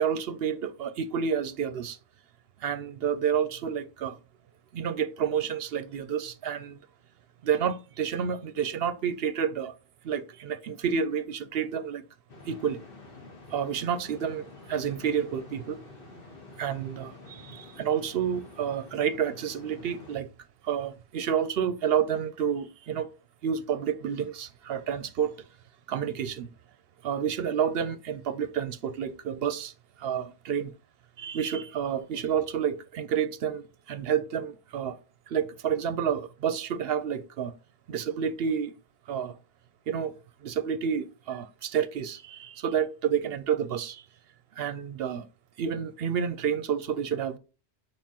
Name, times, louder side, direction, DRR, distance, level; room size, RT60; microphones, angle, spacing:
voice 1, 0.0-2.0 2.6-4.2 4.7-6.8 7.4-9.7 10.0-12.0 12.5-12.8 13.5-15.8 16.6-20.3 20.6-23.1 23.4-25.4 25.9-26.5 27.0-29.7 30.0-30.7 31.2-35.0 35.3-37.5 37.9-38.7 39.1-39.4 39.9-40.1 40.4-44.0 44.6-45.2 45.6-47.4, right 8 dB, 65° right, 0.8 m, -29 dB
sound 1, 12.3-20.2, left 2 dB, 55° left, 1.4 m, -49 dB
7.4 x 4.7 x 2.9 m
omnidirectional pair, 1.2 m